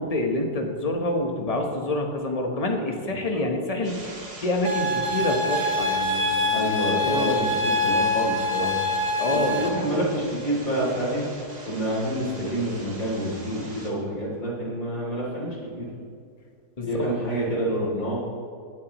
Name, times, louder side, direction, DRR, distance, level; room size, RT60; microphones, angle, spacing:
voice 1, 0.0-6.7 7.0-7.4 9.2-9.7 16.8-17.4, left 1 dB, 25° left, 2 dB, 1.0 m, -27 dB
sound 1, 3.8-13.9, right 1 dB, 25° right, 1.6 m, -43 dB
sound 2, 4.6-9.7, left 2 dB, 65° right, 1.5 m, -25 dB
voice 2, 6.5-8.8 9.3-11.3 11.7-15.9 16.8-18.2, right 1 dB, 55° left, -5 dB, 3.6 m, -28 dB
19.0 x 8.3 x 3.0 m, 2.2 s
omnidirectional pair, 1.7 m